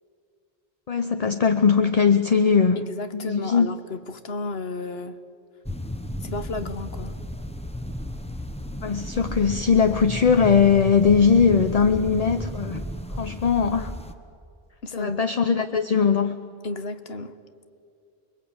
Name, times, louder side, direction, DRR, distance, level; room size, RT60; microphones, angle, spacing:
voice 1, 0.9-2.9 3.1-3.7 8.8-14.0 14.9-16.4, left 6 dB, 40° left, 8 dB, 0.8 m, -20 dB
voice 2, 2.8-5.2 6.2-7.2 14.8-15.2 16.6-17.4, left 2 dB, 80° left, 10 dB, 1.4 m, -33 dB
sound 1, 5.6-14.1, equal, 5° left, 0.9 m, -33 dB
29.0 x 21.5 x 8.7 m, 2.4 s
omnidirectional pair, 1.0 m